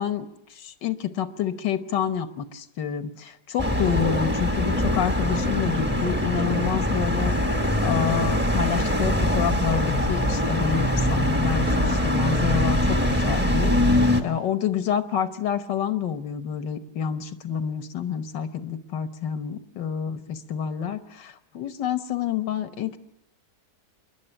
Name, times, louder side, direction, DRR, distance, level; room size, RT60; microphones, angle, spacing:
voice 1, 0.0-23.0, left 9 dB, 90° left, 10 dB, 1.8 m, -28 dB
sound 1, 3.6-14.2, left 1 dB, 5° right, 1.0 m, -23 dB
27.0 x 11.0 x 10.0 m, 0.85 s
omnidirectional pair, 1.9 m